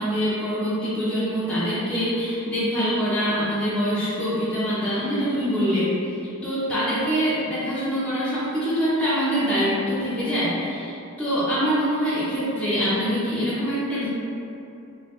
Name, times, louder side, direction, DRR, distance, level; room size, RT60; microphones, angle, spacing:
voice 1, 0.0-5.9 6.4-14.1, equal, 5° left, -12 dB, 0.6 m, -24 dB
3.2 x 3.1 x 2.4 m, 2.7 s
head